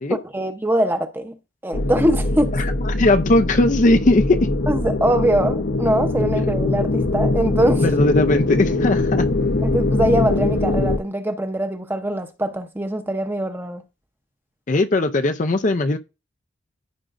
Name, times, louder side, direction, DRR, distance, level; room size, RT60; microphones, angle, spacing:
voice 1, 0.1-1.4 1.6-2.5 4.7-7.9 9.6-13.8, right 1 dB, 10° right, 0.8 m, -22 dB
sound 1, 1.7-11.0, left 2 dB, 60° left, 0.8 m, -22 dB
voice 2, 2.8-4.4 7.8-9.3 14.7-16.0, left 2 dB, 40° left, 0.5 m, -18 dB
15.0 x 5.1 x 2.5 m
head